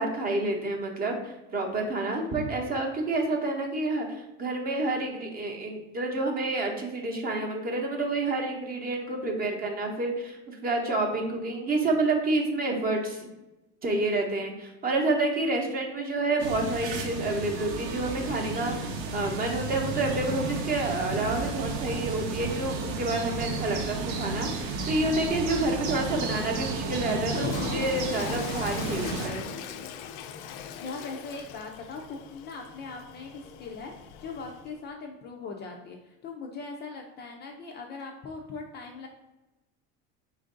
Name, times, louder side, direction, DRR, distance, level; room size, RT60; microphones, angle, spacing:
voice 1, 0.0-13.3 13.8-29.5, right 2 dB, 25° right, 2 dB, 0.7 m, -29 dB
sound 1, 16.4-29.3, right 3 dB, 80° right, 0.8 m, -33 dB
sound 2, 21.1-27.6, right 6 dB, 60° right, 0.5 m, -39 dB
Toilet flush, 27.2-34.7, left 7 dB, 90° left, 0.5 m, -39 dB
voice 2, 30.8-33.9 34.2-39.1, left 4 dB, 30° left, 1 dB, 0.4 m, -40 dB
4.5 x 2.5 x 3.7 m, 1.0 s
cardioid pair, 150°, 34 cm